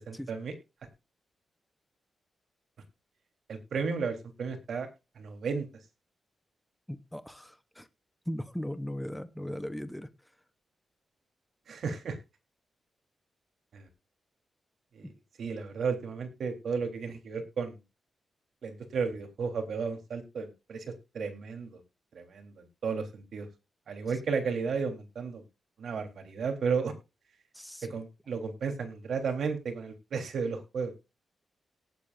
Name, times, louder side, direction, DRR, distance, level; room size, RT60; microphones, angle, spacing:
voice 1, 0.1-0.5 3.5-4.9 5.2-5.7 11.7-12.2 13.7-13.9 14.9-15.1 15.4-17.8 18.6-21.8 22.1-23.5 23.9-25.4 25.8-26.9 27.8-30.9, right 5 dB, 65° right, 4 dB, 3.6 m, -33 dB
voice 2, 6.9-7.9 8.3-10.1 15.0-15.1 27.5-28.0, equal, 5° left, 11 dB, 0.9 m, -38 dB
18.5 x 8.4 x 2.6 m, 0.27 s
wide cardioid pair, 140°, 0 cm